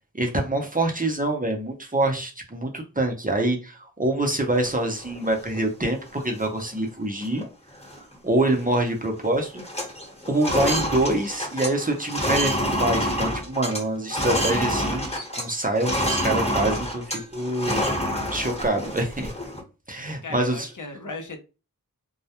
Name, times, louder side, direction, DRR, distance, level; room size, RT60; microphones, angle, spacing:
voice 1, 0.1-7.4 8.2-9.6 10.3-12.5 12.8-17.8 18.3-19.3 19.9-20.7, right 1 dB, 25° right, 0.6 m, -25 dB
sound 1, 4.5-5.6 6.1-6.2 6.4-6.8 7.2-7.4 7.7-8.8 9.0-9.3 9.5-15.5 15.7-19.6, equal, 20° left, 1.0 m, -27 dB
voice 2, 20.2-21.4, left 3 dB, 65° left, 0.5 m, -36 dB
2.2 x 2.1 x 2.8 m
wide cardioid pair, 40°, 34 cm